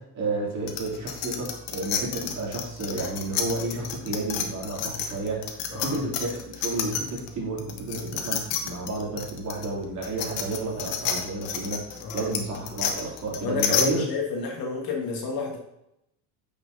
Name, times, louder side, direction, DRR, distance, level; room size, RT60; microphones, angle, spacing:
voice 1, 0.0-14.1, right 2 dB, 40° right, -3 dB, 2.9 m, -31 dB
sound 1, 0.7-7.3 7.6-13.9, left 8 dB, 85° left, 1.2 m, -30 dB
voice 2, 13.4-15.6, left 4 dB, 55° left, 0 dB, 1.5 m, -30 dB
9.2 x 6.0 x 2.7 m, 0.82 s
cardioid pair, 120°, 44 cm